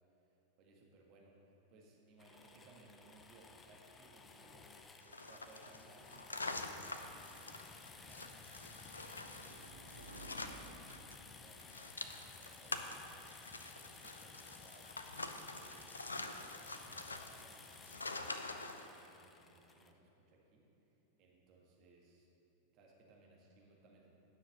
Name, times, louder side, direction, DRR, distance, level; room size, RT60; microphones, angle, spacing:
voice 1, 0.6-4.8 5.3-8.3 8.9-10.5 10.8-13.3 13.8-14.9 15.5-20.7 21.2-22.3 22.7-24.1, right 2 dB, 40° right, -1 dB, 1.7 m, -64 dB
sound 1, 2.2-19.9, left 4 dB, 20° left, 0.6 m, -56 dB
sound 2, 5.0-11.2 11.4-18.9, left 3 dB, 80° left, 0.5 m, -46 dB
sound 3, 5.7-14.6, right 2 dB, 85° right, 1.0 m, -61 dB
10.0 x 6.3 x 6.5 m, 3.0 s
figure-of-eight pair, 90°, 0 cm